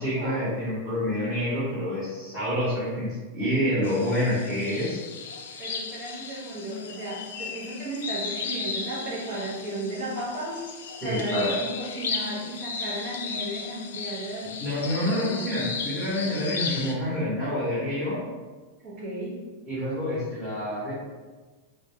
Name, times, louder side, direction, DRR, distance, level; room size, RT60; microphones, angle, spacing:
voice 1, 0.0-5.0 11.0-11.5 14.6-18.2 19.7-20.9, left 1 dB, 10° right, -12 dB, 1.0 m, -27 dB
sound 1, 3.8-16.9, left 5 dB, 85° left, 0.3 m, -35 dB
voice 2, 5.6-10.7 11.0-14.5 18.8-19.4, right 1 dB, 40° right, -4 dB, 0.6 m, -34 dB
2.2 x 2.1 x 3.3 m, 1.3 s
supercardioid pair, 160°, 0 cm